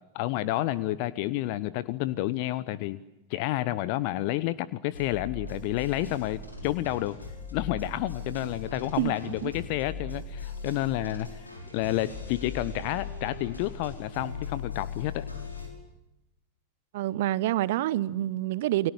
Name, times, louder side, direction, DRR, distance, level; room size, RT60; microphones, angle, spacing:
voice 1, 0.1-3.0 3.3-7.2 7.5-15.3, left 15 dB, 45° left, 0.9 m, -30 dB
sound 1, 4.9-15.7, left 4 dB, 80° left, 6.3 m, -39 dB
voice 2, 16.9-18.9, right 14 dB, 55° right, 0.9 m, -27 dB
29.5 x 24.0 x 8.3 m
figure-of-eight pair, 90°, 0 cm